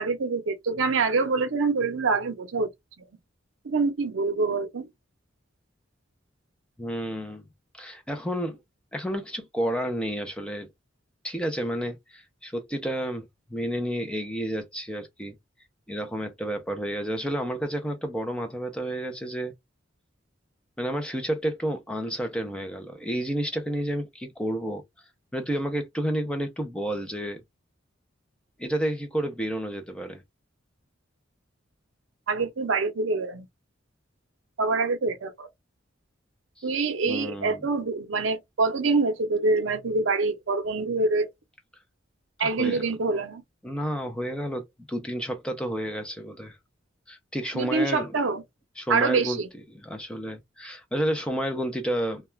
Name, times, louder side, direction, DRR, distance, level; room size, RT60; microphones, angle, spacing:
voice 1, 0.0-2.7 3.6-4.9 32.3-33.5 34.6-35.5 36.6-41.3 42.4-43.4 47.5-48.4 48.9-49.5, right 3 dB, 75° right, 0.6 m, -25 dB
voice 2, 6.8-7.4 7.7-8.6 8.9-10.7 11.2-15.3 15.9-19.5 20.8-24.8 25.3-27.4 28.6-30.2 36.6-36.7 37.1-37.6 42.4-42.9 43.6-46.6 47.1-48.1 48.8-49.4 49.7-52.2, equal, 5° left, 0.4 m, -30 dB
2.3 x 2.2 x 3.1 m
head